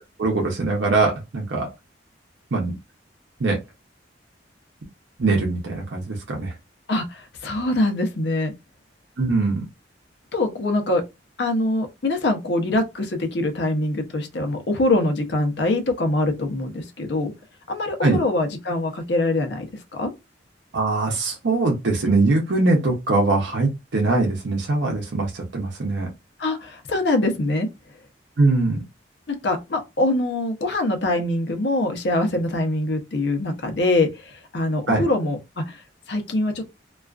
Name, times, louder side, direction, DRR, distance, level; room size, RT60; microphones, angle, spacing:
voice 1, 0.2-1.7 2.5-2.7 3.4-3.6 5.2-6.5 9.2-9.6 18.0-18.2 20.7-26.1 28.4-28.8 34.9-35.1, right 3 dB, 75° right, 0.6 m, -22 dB
voice 2, 6.9-8.5 10.3-11.0 11.4-17.3 17.7-19.7 20.0-20.1 26.4-27.7 29.3-35.8 36.1-36.6, left 2 dB, 65° left, 0.6 m, -23 dB
2.4 x 2.3 x 2.3 m
head